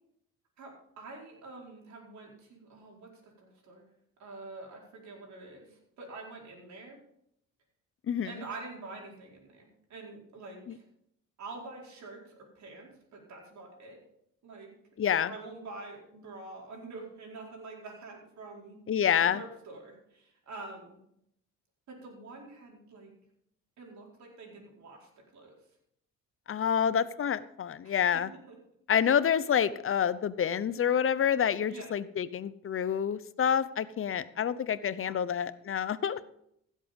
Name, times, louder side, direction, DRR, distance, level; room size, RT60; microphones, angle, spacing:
voice 1, 0.6-3.8 4.2-7.0 8.2-10.8 11.4-14.0 14.4-14.7 15.3-18.8 19.2-21.0 21.9-23.1 23.8-25.6 27.8-28.6 31.7-31.9 34.9-35.3, right 3 dB, 65° right, -1 dB, 4.6 m, -46 dB
voice 2, 15.0-15.3 18.9-19.4 26.5-28.3 28.9-36.2, left 8 dB, 45° left, 15 dB, 0.8 m, -28 dB
16.0 x 7.6 x 5.3 m, 0.73 s
cardioid pair, 90°, 30 cm